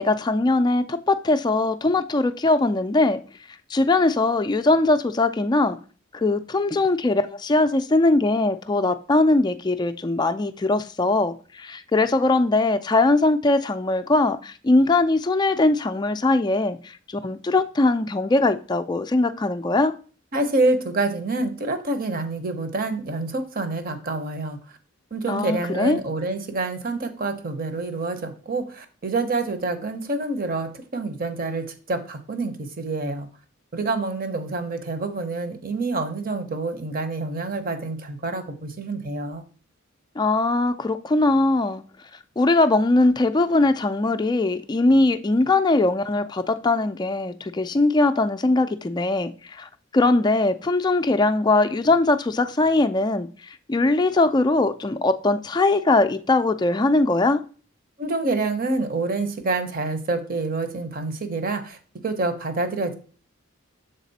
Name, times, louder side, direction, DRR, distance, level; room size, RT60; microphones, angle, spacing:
voice 1, 0.0-3.2 3.7-5.8 6.1-19.9 25.3-26.0 40.2-41.8 42.4-57.4, left 2 dB, 20° left, 0.3 m, -21 dB
voice 2, 20.3-24.6 25.1-33.3 33.7-39.4 58.0-61.8 62.0-62.9, right 3 dB, 45° right, 0.8 m, -27 dB
6.6 x 4.1 x 4.0 m
head